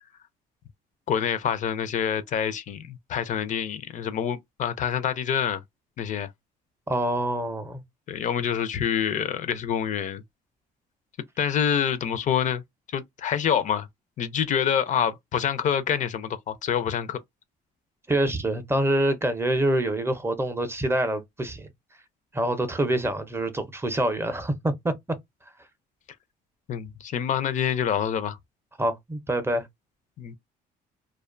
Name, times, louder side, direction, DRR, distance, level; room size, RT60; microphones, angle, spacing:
voice 1, 1.1-5.6 6.0-6.3 8.1-10.2 11.4-12.6 12.9-13.9 14.2-17.2 26.7-28.4 30.2-30.3, left 8 dB, 50° left, 0.4 m, -26 dB
voice 2, 6.9-7.8 18.1-21.7 22.3-24.9 28.8-29.7, right 1 dB, 15° right, 0.5 m, -26 dB
2.4 x 2.2 x 2.4 m
cardioid pair, 110°, 17 cm